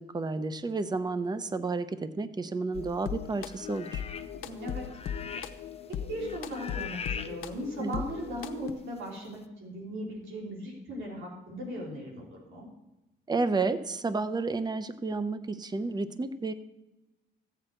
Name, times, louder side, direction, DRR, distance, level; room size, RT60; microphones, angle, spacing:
voice 1, 0.0-4.0 7.8-8.0 13.3-16.5, right 3 dB, 20° right, 12 dB, 0.7 m, -31 dB
sound 1, 2.7-8.7, left 9 dB, 80° left, 0.7 m, -38 dB
sound 2, 3.3-4.4 4.7-5.7 6.0-7.3 8.0-8.1, left 6 dB, 30° left, 0.8 m, -41 dB
voice 2, 4.4-4.8 6.1-12.7, right 1 dB, 75° right, -2 dB, 3.2 m, -38 dB
15.0 x 8.1 x 4.4 m, 1.0 s
cardioid pair, 90°, 20 cm